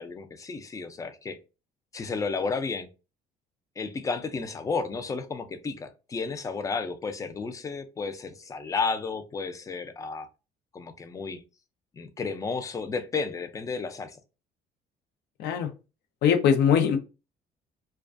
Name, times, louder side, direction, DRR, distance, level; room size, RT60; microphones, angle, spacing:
voice 1, 0.0-1.4 1.9-2.9 3.8-10.3 10.7-11.4 11.9-14.2, left 4 dB, 20° left, 0.4 m, -32 dB
voice 2, 16.2-17.0, left 8 dB, 80° left, 0.6 m, -21 dB
2.4 x 2.2 x 2.4 m
cardioid pair, 110°, 17 cm